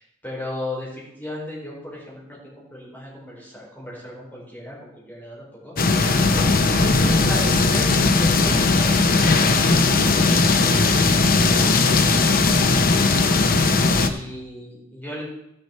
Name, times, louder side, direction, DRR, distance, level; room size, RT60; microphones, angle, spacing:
voice 1, 0.0-6.1 6.3-8.9 13.4-15.2, left 1 dB, 10° left, -6 dB, 4.0 m, -36 dB
sound 1, 5.8-14.1, left 3 dB, 45° left, 0.8 m, -18 dB
16.5 x 6.6 x 4.3 m, 0.81 s
head